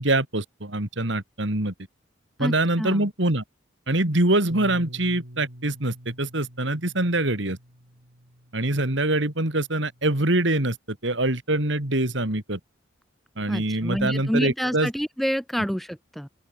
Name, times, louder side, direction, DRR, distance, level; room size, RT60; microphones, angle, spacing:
voice 1, 0.0-1.7 2.4-3.4 3.9-7.6 8.5-12.6 13.4-14.9, right 2 dB, 65° right, 3.2 m, -24 dB
voice 2, 2.4-3.1 13.5-16.3, equal, ahead, 1.2 m, -28 dB
Bass guitar, 4.5-10.7, equal, 85° right, 6.7 m, -46 dB
open air
head